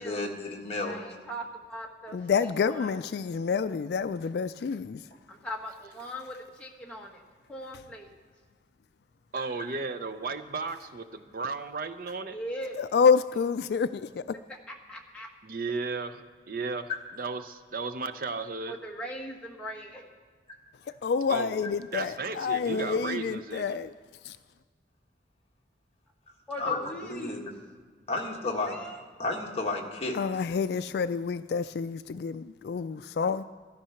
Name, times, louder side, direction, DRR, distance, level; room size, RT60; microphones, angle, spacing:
voice 1, 0.0-1.0 9.4-9.8 16.9-17.0 26.6-27.4 28.1-28.7 29.2-30.2, left 3 dB, 30° left, 1.6 m, -32 dB
voice 2, 0.8-3.0 5.3-7.2 7.5-8.1 12.3-12.8 14.5-15.3 18.7-20.0 26.5-27.5 28.4-29.0, equal, 5° left, 1.5 m, -40 dB
voice 3, 2.1-5.0 12.8-14.2 21.0-23.9 24.2-24.4 30.1-33.4, left 5 dB, 60° left, 0.3 m, -28 dB
voice 4, 9.3-12.4 15.4-16.9 17.2-18.8 21.3-21.6 21.9-23.8, right 4 dB, 50° right, 0.6 m, -34 dB
14.0 x 13.0 x 5.8 m
head